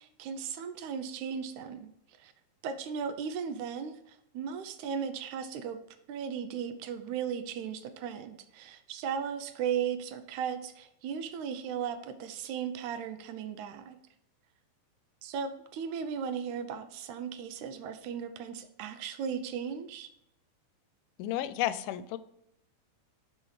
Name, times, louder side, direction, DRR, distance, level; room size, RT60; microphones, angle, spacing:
voice 1, 0.0-1.9 2.2-2.3 2.6-5.8 6.1-14.0 15.2-20.1, right 7 dB, 80° right, 9 dB, 2.0 m, -36 dB
voice 2, 21.2-22.2, left 12 dB, 90° left, 14 dB, 2.1 m, -32 dB
5.6 x 5.4 x 4.7 m, 0.80 s
omnidirectional pair, 3.6 m